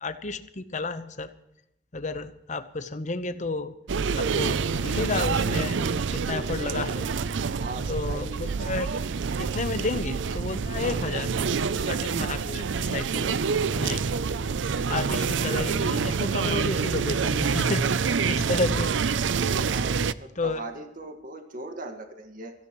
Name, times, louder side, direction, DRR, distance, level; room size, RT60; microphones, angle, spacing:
voice 1, 0.0-1.3 1.9-3.7 4.2-7.0 7.9-8.9 9.4-11.3 11.9-13.3 13.7-14.0 14.9-18.9 20.4-20.6, left 3 dB, 40° left, 10 dB, 1.0 m, -31 dB
sound 1, 3.9-20.1, right 5 dB, 80° right, 0.5 m, -27 dB
voice 2, 6.3-6.6 7.5-8.5 9.8-9.9 10.8-11.1 18.2-18.5 19.7-22.5, right 2 dB, 50° right, 5 dB, 1.8 m, -39 dB
25.0 x 15.5 x 3.1 m, 0.84 s
head